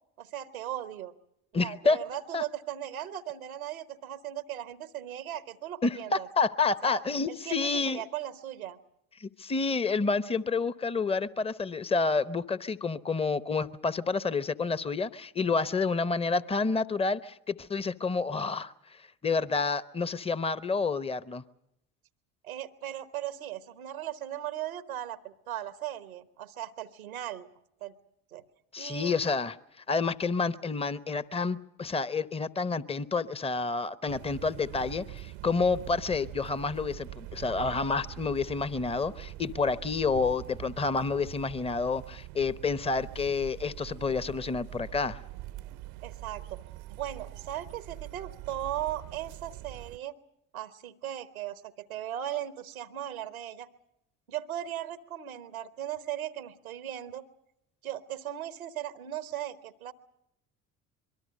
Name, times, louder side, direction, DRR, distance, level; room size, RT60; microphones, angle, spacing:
voice 1, 0.2-1.1 1.6-6.3 6.8-7.0 7.3-8.8 22.4-27.5 27.8-27.9 28.3-28.4 28.8-29.2 46.0-46.6 46.9-50.1 50.5-53.7 54.3-57.2 57.8-59.9, right 12 dB, 90° right, 13 dB, 1.1 m, -38 dB
voice 2, 1.5-2.0 2.3-2.4 5.8-8.0 9.2-18.7 19.0-21.4 28.7-29.6 29.9-45.2, left 4 dB, 15° left, 17 dB, 0.8 m, -29 dB
sound 1, 34.1-50.0, right 15 dB, 65° right, 0.8 m, -44 dB
24.5 x 22.5 x 6.5 m, 0.82 s
hypercardioid pair, 60°, 41 cm